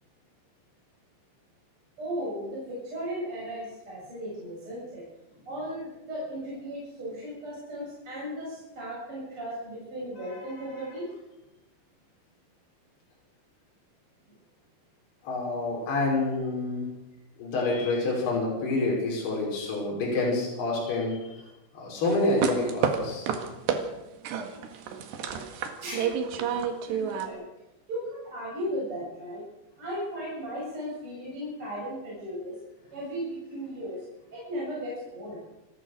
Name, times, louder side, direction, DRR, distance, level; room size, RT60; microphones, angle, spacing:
voice 1, 2.0-5.0 5.5-11.1 25.8-26.2 26.9-27.4 27.9-29.5 29.8-32.6 32.9-34.0 34.3-35.4, equal, 25° right, -5 dB, 8.1 m, -36 dB
voice 2, 10.3-10.6 15.2-16.9 17.4-21.4 21.7-23.3, left 2 dB, 55° left, -3 dB, 7.2 m, -28 dB
sound 1, 22.1-23.8 24.3-27.3, right 8 dB, 65° right, 3.8 m, -29 dB
29.0 x 14.0 x 6.6 m, 0.95 s
omnidirectional pair, 5.7 m